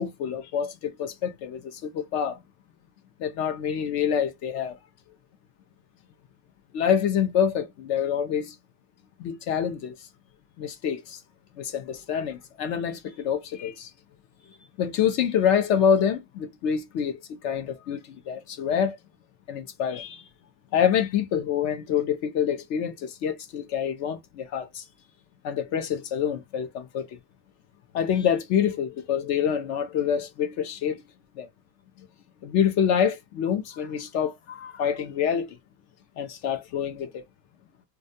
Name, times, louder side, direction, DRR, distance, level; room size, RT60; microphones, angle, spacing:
voice 1, 0.0-2.4 3.2-4.8 6.7-8.6 9.2-10.1 10.6-11.2 11.6-13.9 14.8-19.0 19.5-20.2 20.7-24.8 25.4-27.2 27.9-31.0 31.4-31.5 32.4-35.6 36.2-37.2, left 8 dB, 35° left, 0.4 m, -26 dB
2.3 x 2.2 x 2.6 m
supercardioid pair, 130°, 49 cm